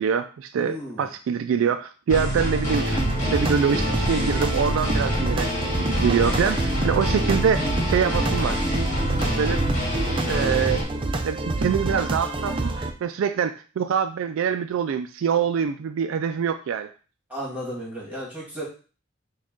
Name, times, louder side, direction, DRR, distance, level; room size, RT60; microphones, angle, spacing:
voice 1, 0.0-8.7 9.2-9.6 10.3-10.8 11.2-16.9, right 7 dB, 85° right, 8 dB, 0.3 m, -25 dB
voice 2, 0.6-1.1 17.3-18.6, equal, 10° right, -4 dB, 1.7 m, -34 dB
sound 1, 2.1-10.8, equal, 40° left, 1.7 m, -26 dB
sound 2, 2.7-12.9, right 2 dB, 25° right, 0.5 m, -27 dB
6.1 x 2.3 x 3.7 m, 0.37 s
head